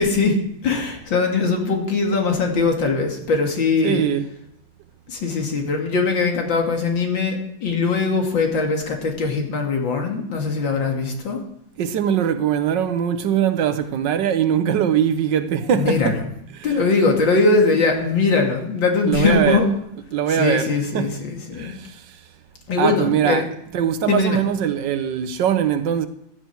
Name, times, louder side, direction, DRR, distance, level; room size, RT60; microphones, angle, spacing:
voice 1, 0.0-4.0 5.1-11.4 15.7-16.2 16.6-19.7 20.3-21.7 22.7-23.5 24.1-24.4, left 4 dB, 75° left, 2.8 m, -21 dB
voice 2, 3.8-4.3 11.8-16.2 16.5-16.7 19.0-19.6 20.1-21.2 21.5-22.0 22.8-23.4 23.7-26.1, right 9 dB, 70° right, 1.4 m, -21 dB
15.0 x 10.5 x 4.5 m
omnidirectional pair, 2.1 m